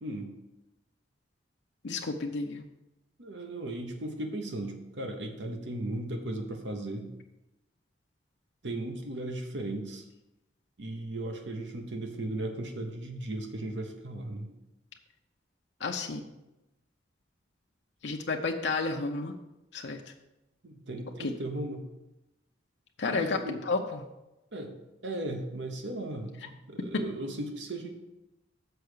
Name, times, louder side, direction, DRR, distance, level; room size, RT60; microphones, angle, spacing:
voice 1, 0.0-0.3 3.2-7.1 8.6-10.0 10.8-14.5 20.6-21.9 23.1-23.6 24.5-24.7 25.0-27.9, right 1 dB, 70° right, 4 dB, 1.0 m, -36 dB
voice 2, 1.8-2.6 15.8-16.3 18.0-19.3 19.7-20.0 21.2-21.3 23.0-23.3 23.7-24.0, left 3 dB, 70° left, 2 dB, 0.6 m, -31 dB
6.8 x 4.7 x 6.6 m, 0.96 s
head